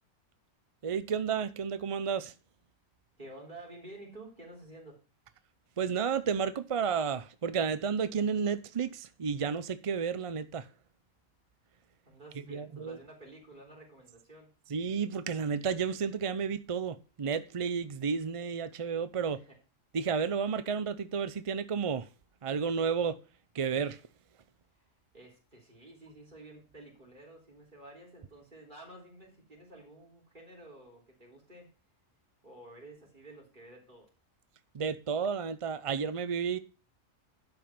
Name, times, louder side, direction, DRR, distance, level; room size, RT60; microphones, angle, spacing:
voice 1, 0.8-2.3 5.8-10.7 12.5-13.0 14.7-19.4 19.9-22.1 22.4-23.2 23.5-24.0 34.7-36.6, right 6 dB, 55° right, 0.3 m, -32 dB
voice 2, 3.2-5.0 12.1-14.5 19.3-19.6 24.7-24.9 25.1-31.7 32.4-34.1, right 1 dB, 35° right, 3.8 m, -51 dB
11.5 x 5.2 x 5.8 m
omnidirectional pair, 1.4 m